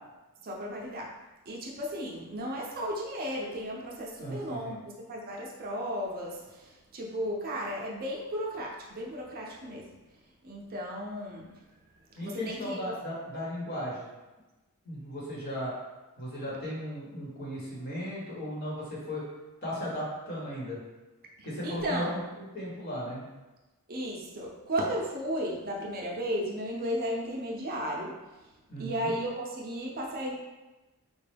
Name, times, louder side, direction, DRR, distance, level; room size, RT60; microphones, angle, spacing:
voice 1, 0.4-1.1 1.5-10.0 10.4-11.5 12.2-12.9 21.4-22.1 23.9-28.1 28.8-30.3, equal, 45° right, -2 dB, 0.6 m, -34 dB
voice 2, 4.2-4.8 12.2-14.1 14.8-15.7 16.2-19.2 19.6-20.8 21.4-23.2 28.7-29.1, equal, 45° left, -5 dB, 1.2 m, -36 dB
4.2 x 2.2 x 3.3 m, 1.1 s
head